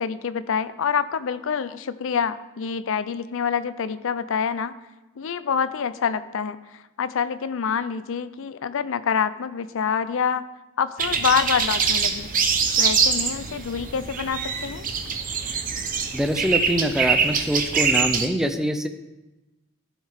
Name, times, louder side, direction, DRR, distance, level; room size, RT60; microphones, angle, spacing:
voice 1, 0.0-4.7 5.2-10.4 10.8-12.3 12.8-14.8, left 6 dB, 65° left, 13 dB, 0.5 m, -26 dB
sound 1, 11.0-18.3, right 5 dB, 40° right, 0.8 m, -24 dB
voice 2, 16.1-18.9, equal, ahead, 7 dB, 0.5 m, -24 dB
14.0 x 5.5 x 3.5 m, 1.1 s
head